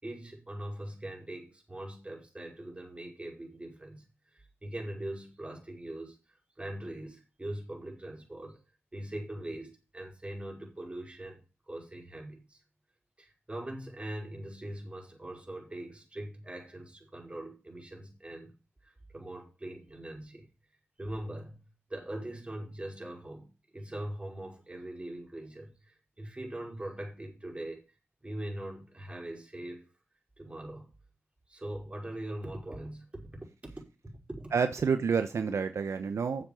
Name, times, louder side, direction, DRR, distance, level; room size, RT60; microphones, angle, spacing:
voice 1, 0.0-4.1 4.3-6.2 6.6-8.6 8.9-11.4 11.7-12.6 13.2-20.5 21.0-21.6 21.9-27.8 28.2-29.9 30.4-30.9 31.5-33.9 34.3-34.5, right 1 dB, 25° right, 5.1 m, -41 dB
voice 2, 34.5-36.5, right 5 dB, 75° right, 0.9 m, -29 dB
9.8 x 7.6 x 5.2 m
cardioid pair, 55°, 5 cm